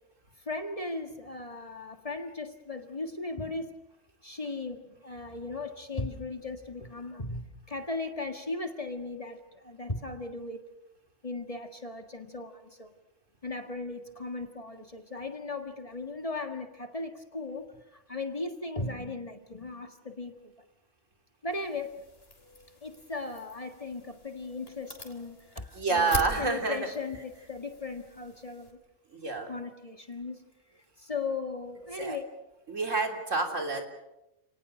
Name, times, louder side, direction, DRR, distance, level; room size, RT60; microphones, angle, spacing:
voice 1, 0.4-3.8 4.2-10.6 11.2-12.9 13.4-20.5 21.4-22.0 22.8-28.8 29.5-30.5 31.0-32.2, left 3 dB, 30° left, 6 dB, 1.8 m, -37 dB
sound 1, 21.5-28.7, left 1 dB, 50° left, 3.9 m, -43 dB
voice 2, 25.7-26.9 29.1-29.5 32.0-32.2 32.7-33.8, right 4 dB, 75° right, 3 dB, 3.6 m, -28 dB
29.5 x 19.0 x 6.6 m, 0.92 s
omnidirectional pair, 1.3 m